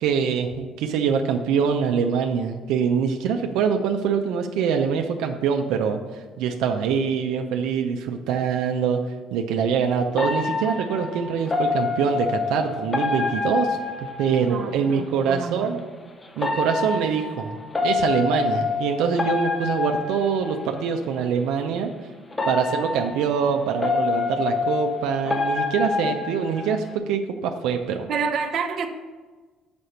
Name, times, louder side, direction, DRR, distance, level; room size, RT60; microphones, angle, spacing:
voice 1, 0.0-6.0 6.4-9.0 9.3-15.8 16.4-17.6 17.8-21.9 22.4-28.1, right 6 dB, 90° right, 4 dB, 0.6 m, -24 dB
sound 1, 10.2-14.8 16.4-21.0 22.3-26.9, left 4 dB, 15° left, 0.6 m, -27 dB
voice 2, 14.4-15.9 28.1-28.9, right 5 dB, 50° right, 5 dB, 0.8 m, -29 dB
6.6 x 5.2 x 5.7 m, 1.3 s
cardioid pair, 135°, 0 cm